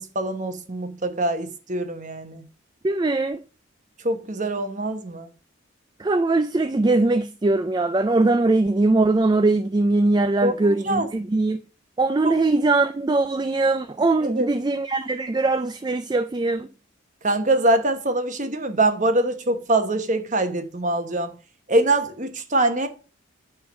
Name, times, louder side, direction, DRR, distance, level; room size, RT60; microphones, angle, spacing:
voice 1, 0.0-2.5 4.0-5.3 10.4-11.1 12.2-12.3 14.4-14.5 17.2-21.3 21.7-22.9, right 2 dB, 35° right, 1.1 m, -23 dB
voice 2, 2.8-3.4 6.0-11.6 12.0-16.7, right 2 dB, 20° right, 0.3 m, -21 dB
9.4 x 3.7 x 6.1 m
head